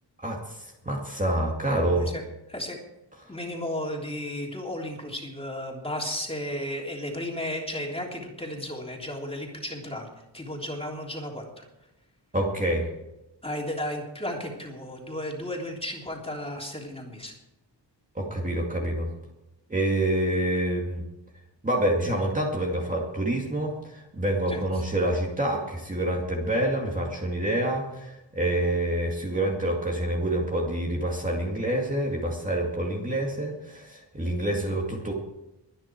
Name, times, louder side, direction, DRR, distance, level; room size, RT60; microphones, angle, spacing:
voice 1, 0.2-2.1 12.3-12.9 18.2-19.1 19.7-21.0 21.6-35.1, right 1 dB, 20° right, -1 dB, 2.3 m, -27 dB
voice 2, 3.3-10.1 10.3-11.6 13.4-17.3 24.5-24.6 34.4-34.6, left 1 dB, 15° left, -1 dB, 3.3 m, -34 dB
23.0 x 10.0 x 4.6 m, 0.94 s
wide cardioid pair, 155°, 43 cm